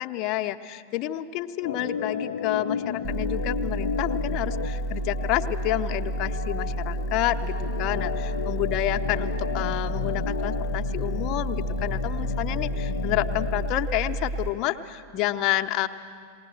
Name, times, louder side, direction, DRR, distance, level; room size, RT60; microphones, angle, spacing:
voice 1, 0.0-15.9, left 14 dB, 40° left, 6 dB, 0.8 m, -29 dB
Organ, 1.6-13.8, left 8 dB, 60° left, 0.5 m, -33 dB
sound 1, 3.0-14.5, right 2 dB, 30° right, 0.7 m, -30 dB
19.5 x 19.5 x 7.8 m, 2.3 s
figure-of-eight pair, 90°, 0 cm